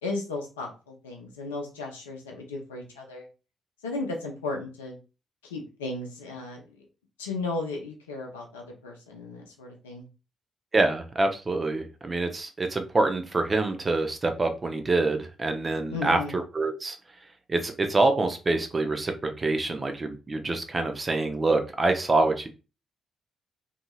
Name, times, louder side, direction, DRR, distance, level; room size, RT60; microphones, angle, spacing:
voice 1, 0.0-3.2 3.8-5.0 5.4-6.9 7.2-10.1 15.9-16.4, left 3 dB, 85° left, 1 dB, 0.5 m, -35 dB
voice 2, 10.7-17.0 17.5-22.5, right 2 dB, 35° right, 6 dB, 0.7 m, -26 dB
2.8 x 2.8 x 2.3 m, 0.31 s
hypercardioid pair, 40°, 0 cm